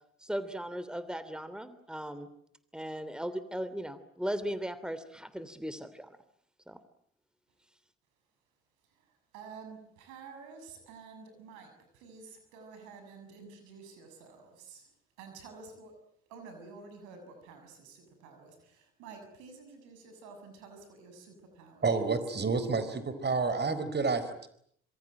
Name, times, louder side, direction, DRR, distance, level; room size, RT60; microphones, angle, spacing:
voice 1, 0.2-2.3 2.7-6.1 6.7-6.8, equal, 5° right, 14 dB, 3.0 m, -37 dB
voice 2, 8.8-16.0 16.3-22.1, right 4 dB, 80° right, 7 dB, 7.2 m, -50 dB
voice 3, 21.8-24.5, right 4 dB, 35° right, 12 dB, 4.4 m, -29 dB
26.0 x 24.0 x 9.0 m, 0.68 s
hypercardioid pair, 50°, 29 cm